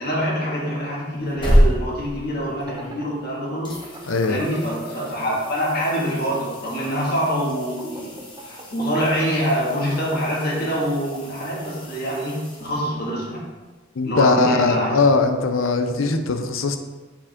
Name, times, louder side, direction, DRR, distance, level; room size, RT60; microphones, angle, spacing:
voice 1, 0.0-3.9 4.3-8.1 8.4-13.4 14.0-15.0, equal, 50° left, -5 dB, 2.0 m, -25 dB
sound 1, 1.1-3.3 3.6-13.2 16.0-16.1, equal, 25° left, 1.2 m, -28 dB
sound 2, 2.5-6.0 6.3-11.7, right 2 dB, 20° right, 0.7 m, -40 dB
voice 2, 4.1-4.4 14.0-16.8, left 3 dB, 80° left, 7 dB, 0.6 m, -20 dB
7.2 x 4.9 x 3.7 m, 1.3 s
head